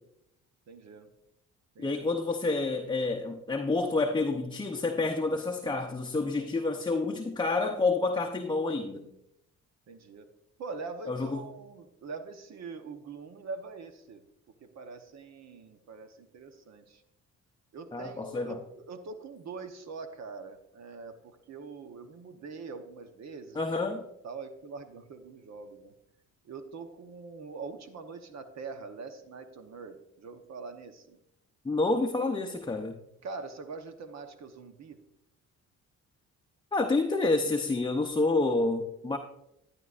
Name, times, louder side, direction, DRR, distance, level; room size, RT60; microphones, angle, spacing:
voice 1, 0.7-1.1 1.7-2.0 9.9-10.3 10.6-14.2 14.6-17.0 17.7-23.9 24.2-25.9 26.4-31.2 33.2-35.0, right 4 dB, 60° right, 8 dB, 1.0 m, -43 dB
voice 2, 1.8-9.1 11.1-11.5 17.9-18.6 23.6-24.0 31.6-33.0 36.7-39.2, left 3 dB, 15° left, 3 dB, 0.7 m, -28 dB
12.0 x 9.8 x 2.5 m, 0.80 s
cardioid pair, 90°, 30 cm